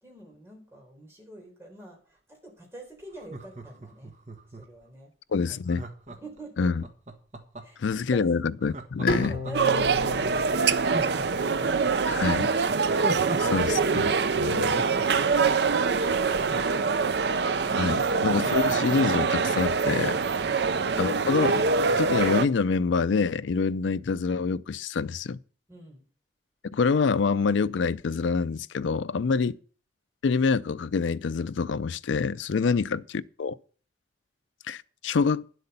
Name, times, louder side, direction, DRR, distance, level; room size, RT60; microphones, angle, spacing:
voice 1, 0.0-4.1 4.5-5.1 5.5-5.7 6.1-6.7 7.6-8.4 25.7-26.1 29.2-29.5 32.7-32.8, right 1 dB, 15° right, 4.1 m, -47 dB
Laughter, 3.1-4.8 5.7-7.9 8.6-10.0 10.4-10.5 10.8-13.6 13.9-14.0 14.4-17.3 17.7-17.8 18.0-19.7 20.1-20.2, right 2 dB, 40° right, 1.3 m, -39 dB
voice 2, 5.3-5.8 6.6-6.8 7.8-9.4 12.1-12.5 13.4-14.8 17.8-20.2 21.0-21.7 22.0-25.4 26.7-29.6 30.2-33.6 34.7-35.4, left 5 dB, 90° left, 0.5 m, -26 dB
Bowed string instrument, 9.1-12.3, left 2 dB, 55° left, 3.5 m, -34 dB
sound 1, 9.5-22.5, right 4 dB, 65° right, 0.6 m, -24 dB
10.5 x 8.1 x 5.5 m
head